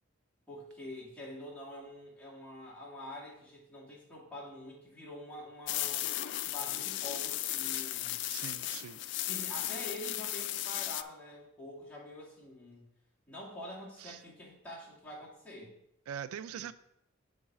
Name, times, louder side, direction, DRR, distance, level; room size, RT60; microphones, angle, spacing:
voice 1, 0.5-6.1 6.4-8.2 9.2-12.9 13.3-15.7 16.5-16.6, left 1 dB, 5° left, -7 dB, 2.2 m, -46 dB
sound 1, 5.7-11.0, left 14 dB, 55° left, 0.3 m, -35 dB
voice 2, 8.2-9.0 14.0-14.2 16.1-16.7, right 9 dB, 85° right, 14 dB, 0.3 m, -42 dB
7.2 x 4.0 x 6.1 m, 0.79 s
head